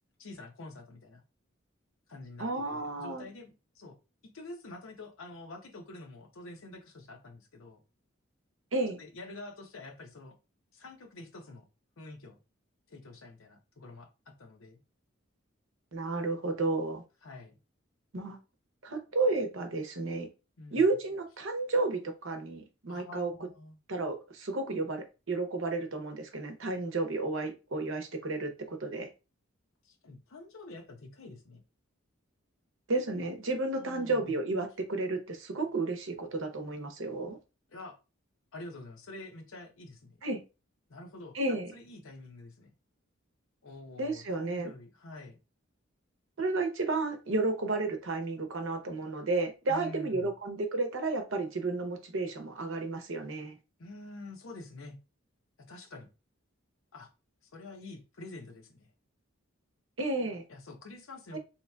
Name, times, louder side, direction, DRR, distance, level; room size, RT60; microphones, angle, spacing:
voice 1, 0.2-1.2 2.1-4.0 4.3-7.8 9.0-10.3 10.7-11.7 12.0-12.4 12.9-14.8 17.2-17.6 20.6-20.9 22.9-23.8 29.8-31.6 33.7-34.4 37.7-38.0 38.5-40.2 40.9-42.7 43.6-45.4 49.7-50.3 53.8-55.0 55.6-56.1 56.9-57.1 57.4-58.9 60.5-61.4, left 2 dB, 85° left, 5 dB, 0.7 m, -47 dB
voice 2, 2.4-3.3 8.7-9.0 15.9-17.0 18.1-18.4 18.8-20.3 20.7-23.3 23.9-29.1 32.9-37.4 40.2-40.4 41.3-41.7 44.0-44.7 46.4-53.6 60.0-60.4 61.3-61.4, right 3 dB, 75° right, 6 dB, 0.8 m, -32 dB
3.8 x 2.8 x 2.2 m, 0.29 s
head